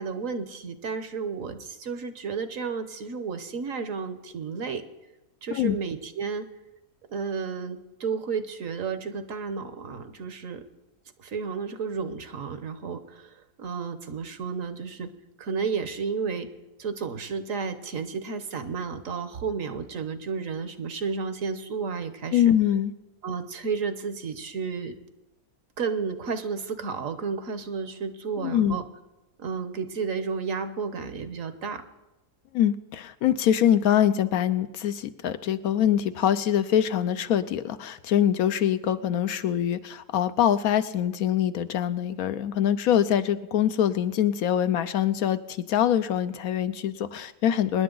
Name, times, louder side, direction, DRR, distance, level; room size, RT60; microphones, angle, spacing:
voice 1, 0.0-4.8 5.4-6.5 7.1-10.6 11.2-15.1 15.4-16.5 16.8-22.5 23.2-24.9 25.8-28.8 29.4-31.8, right 5 dB, 60° right, 10 dB, 1.2 m, -32 dB
voice 2, 22.3-22.9 28.4-28.8 32.5-47.8, left 10 dB, 75° left, 11 dB, 1.1 m, -24 dB
25.0 x 10.5 x 3.9 m, 1.0 s
omnidirectional pair, 1.6 m